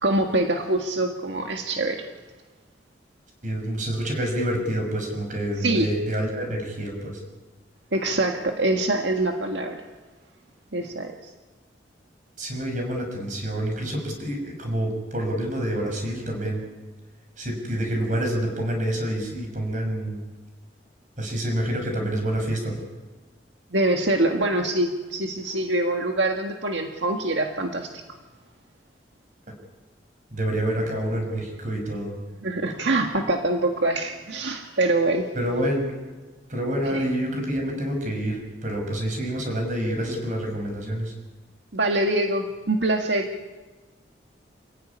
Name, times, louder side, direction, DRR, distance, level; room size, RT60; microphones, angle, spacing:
voice 1, 0.0-2.1 5.6-5.9 7.9-9.8 10.7-11.1 23.7-27.9 32.4-35.3 36.9-37.0 41.7-43.3, right 2 dB, 90° right, 3 dB, 1.8 m, -24 dB
voice 2, 3.4-7.2 12.4-16.6 17.4-20.2 21.2-22.8 30.3-32.2 35.3-35.9 36.5-41.1, right 1 dB, 45° right, 3 dB, 6.4 m, -27 dB
27.5 x 15.5 x 9.8 m, 1.3 s
head